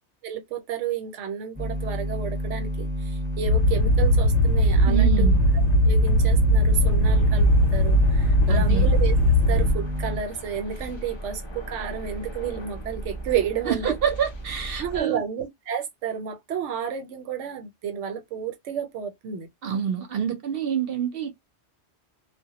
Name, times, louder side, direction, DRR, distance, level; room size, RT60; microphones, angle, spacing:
voice 1, 0.2-5.3 5.9-9.1 9.5-13.9 14.8-19.5, right 8 dB, 90° right, 1.0 m, -31 dB
sound 1, 1.6-10.2, equal, 10° right, 0.8 m, -30 dB
sound 2, 3.5-9.7, equal, 75° left, 0.9 m, -19 dB
voice 2, 4.9-5.4 8.5-8.9 13.7-15.2 19.6-21.4, right 8 dB, 60° right, 0.8 m, -27 dB
sound 3, 7.0-15.0, right 1 dB, 35° left, 0.4 m, -38 dB
2.2 x 2.1 x 2.8 m
omnidirectional pair, 1.2 m